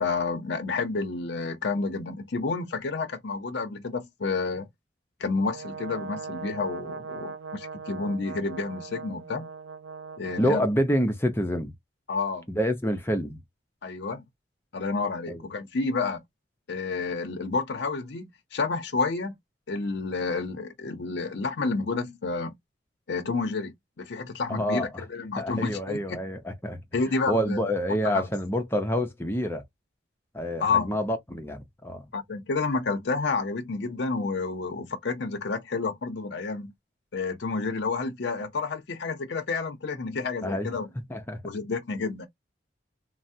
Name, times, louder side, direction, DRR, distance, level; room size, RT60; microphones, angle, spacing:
voice 1, 0.0-4.7 5.2-9.5 10.2-10.7 12.1-12.4 13.8-14.2 14.7-16.2 16.7-19.4 19.7-22.5 23.1-26.2 26.9-27.6 28.0-28.3 30.6-30.9 32.1-36.7 37.1-40.9 41.4-42.3, left 4 dB, 70° left, 0.6 m, -30 dB
Brass instrument, 5.5-10.7, right 5 dB, 80° right, 0.3 m, -40 dB
voice 2, 10.4-11.7 12.5-13.4 15.3-15.4 24.5-25.0 25.4-29.6 30.3-32.1 40.4-40.7 41.1-41.4, equal, 10° left, 0.5 m, -28 dB
3.3 x 2.0 x 2.6 m
head